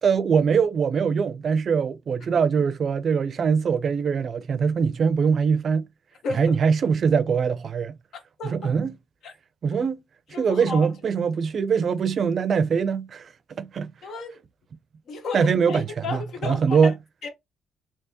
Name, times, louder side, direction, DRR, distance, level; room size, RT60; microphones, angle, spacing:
voice 1, 0.0-5.9 6.4-7.9 8.5-8.9 9.6-10.0 10.4-13.9 15.3-16.9, right 6 dB, 55° right, 0.5 m, -22 dB
voice 2, 6.2-6.6 8.1-8.7 9.2-9.3 10.3-10.9 14.0-14.4 15.1-16.9 17.2-17.3, left 4 dB, 70° left, 1.1 m, -33 dB
3.4 x 3.0 x 2.8 m
cardioid pair, 90°, 0 cm